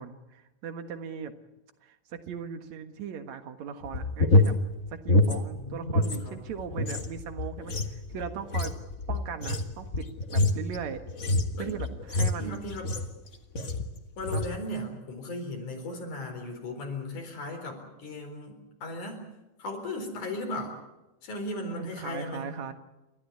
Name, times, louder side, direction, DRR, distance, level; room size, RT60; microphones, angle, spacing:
voice 1, 0.0-1.3 1.8-4.5 4.9-8.7 9.1-10.1 10.3-11.0 11.6-12.6 14.3-14.4 21.7-22.7, right 7 dB, 70° right, 8 dB, 2.8 m, -38 dB
sound 1, 3.8-6.2 6.5-13.2 13.6-13.9 14.2-14.6, left 2 dB, 35° left, 1.3 m, -26 dB
voice 2, 5.5-6.4 11.6-11.8 12.4-12.9 14.2-19.3 19.6-20.8 21.2-22.5, left 1 dB, 90° left, 4 dB, 5.8 m, -37 dB
29.5 x 13.5 x 9.6 m, 1.0 s
omnidirectional pair, 3.4 m